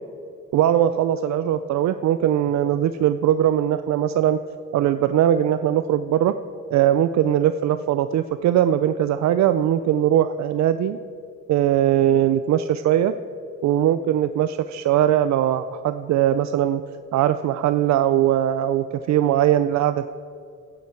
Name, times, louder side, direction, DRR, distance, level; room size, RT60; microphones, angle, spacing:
voice 1, 0.5-4.4 4.7-6.3 6.7-11.0 11.5-13.1 13.6-16.8 17.1-20.1, right 11 dB, 65° right, 12 dB, 0.5 m, -20 dB
17.5 x 8.9 x 4.5 m, 2.4 s
cardioid pair, 90°, 30 cm